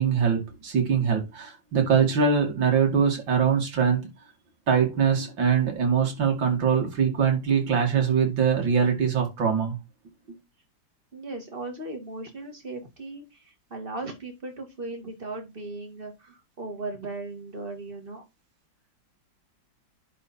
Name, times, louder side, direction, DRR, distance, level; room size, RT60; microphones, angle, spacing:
voice 1, 0.0-4.1 4.7-9.8, right 6 dB, 80° right, 3.0 m, -23 dB
voice 2, 11.1-18.2, right 2 dB, 30° right, 2.6 m, -37 dB
10.5 x 4.2 x 4.3 m
omnidirectional pair, 2.0 m